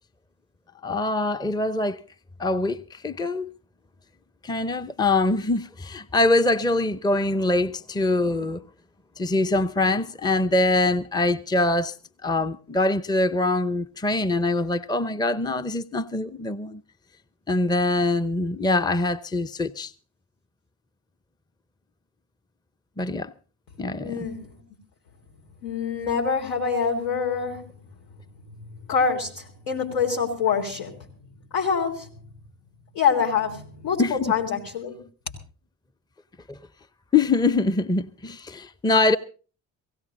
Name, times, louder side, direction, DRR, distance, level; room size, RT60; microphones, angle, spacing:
voice 1, 0.8-2.0 2.4-3.5 4.4-8.6 9.2-11.9 12.2-16.8 17.5-19.9 23.0-23.3 23.8-24.1 34.0-34.3 36.5-36.6 37.1-39.2, left 2 dB, 10° left, 0.7 m, -23 dB
voice 2, 24.0-24.6 25.6-27.8 28.9-31.0 31.5-32.1 33.0-35.0, left 6 dB, 75° left, 3.6 m, -25 dB
17.5 x 17.0 x 3.9 m
hypercardioid pair, 45°, 43 cm